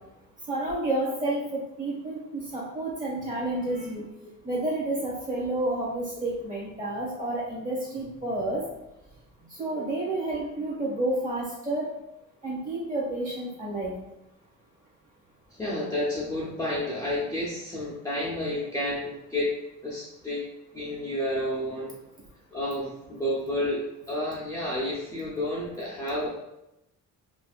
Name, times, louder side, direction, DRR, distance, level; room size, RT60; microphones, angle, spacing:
voice 1, 0.5-4.0 4.4-8.6 9.5-11.9 12.4-13.9, right 2 dB, 25° right, -6 dB, 1.4 m, -30 dB
voice 2, 15.5-19.6 19.8-20.5 20.7-21.9 22.5-26.4, left 1 dB, 10° left, -6 dB, 0.5 m, -30 dB
5.2 x 2.5 x 2.4 m, 0.88 s
cardioid pair, 160°, 34 cm